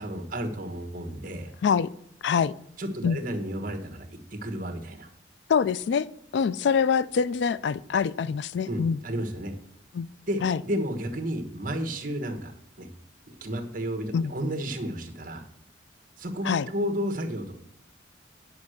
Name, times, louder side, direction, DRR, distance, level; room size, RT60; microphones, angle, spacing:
voice 1, 0.0-1.5 2.8-5.1 8.7-9.5 10.3-12.5 12.8-12.9 13.3-15.5 16.2-17.5, equal, 45° right, 4 dB, 1.4 m, -32 dB
voice 2, 2.2-2.5 3.0-3.2 5.5-6.1 6.3-9.0 9.9-10.1 10.4-10.6 14.1-14.3 16.4-16.7, left 6 dB, 65° left, 18 dB, 0.3 m, -24 dB
9.5 x 5.6 x 6.4 m, 0.71 s
head